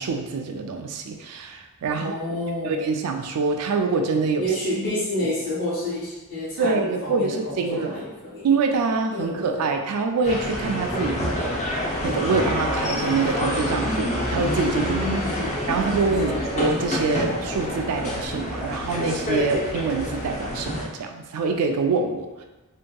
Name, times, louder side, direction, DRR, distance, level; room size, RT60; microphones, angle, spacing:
voice 1, 0.0-2.2 2.6-4.5 5.2-5.3 6.6-7.9 8.4-11.5 12.0-15.1 15.7-22.4, right 4 dB, 85° right, 4 dB, 0.4 m, -25 dB
voice 2, 1.9-2.8 4.4-8.4 9.1-9.7 10.9-11.1 14.8-15.5 16.3-16.4, left 1 dB, 55° left, -11 dB, 0.9 m, -30 dB
sound 1, 10.2-20.8, left 1 dB, 30° left, 0.5 m, -27 dB
2.7 x 2.6 x 2.2 m, 1.1 s
head